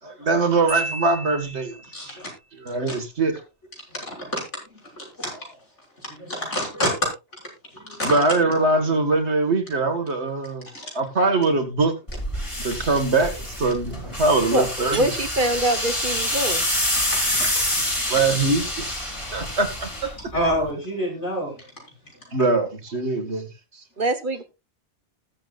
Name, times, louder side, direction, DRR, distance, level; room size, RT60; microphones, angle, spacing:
voice 1, 0.0-1.7 2.1-2.2 2.5-3.3 8.0-10.7 10.9-11.9 12.6-15.1 18.1-19.0 19.3-19.9 22.3-23.5, right 3 dB, 70° right, 2.2 m, -22 dB
Marimba xylophone, 0.7-2.1, right 1 dB, 50° left, 8.0 m, -33 dB
voice 2, 1.9-2.3 2.9-3.0 3.9-4.4 5.0-5.5 6.0-7.1 7.7-8.2 10.7-10.8 16.9-18.2 20.3-21.6, equal, 90° left, 6.9 m, -28 dB
sound 1, 12.1-20.7, left 1 dB, 25° left, 3.1 m, -27 dB
voice 3, 14.9-16.6 24.0-24.4, right 1 dB, 45° right, 1.4 m, -23 dB
20.0 x 7.7 x 2.5 m
omnidirectional pair, 1.2 m